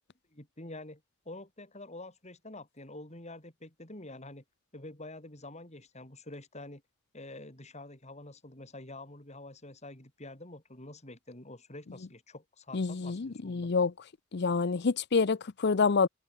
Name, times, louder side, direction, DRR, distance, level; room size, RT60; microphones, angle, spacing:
voice 1, 0.3-4.4 4.7-6.8 7.1-13.7, left 2 dB, 35° left, 4.7 m, -47 dB
voice 2, 12.7-13.9 14.3-16.1, left 4 dB, 55° left, 0.6 m, -27 dB
head